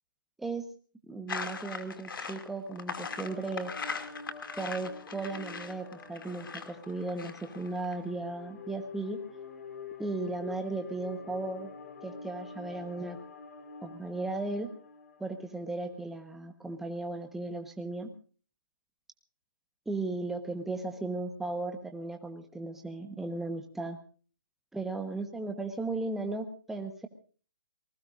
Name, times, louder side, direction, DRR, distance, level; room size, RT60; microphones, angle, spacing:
voice 1, 1.0-3.7 4.6-9.2 10.0-11.7 12.0-13.2 13.8-14.7 15.2-18.1 19.9-24.0 24.7-27.1, right 3 dB, 5° right, 5 dB, 1.1 m, -36 dB
sound 1, 1.3-7.9, left 5 dB, 80° left, 2.4 m, -40 dB
sound 2, 2.5-15.8, left 5 dB, 45° left, 3.4 m, -47 dB
27.0 x 20.0 x 2.5 m, 0.40 s
hypercardioid pair, 170°, 11 cm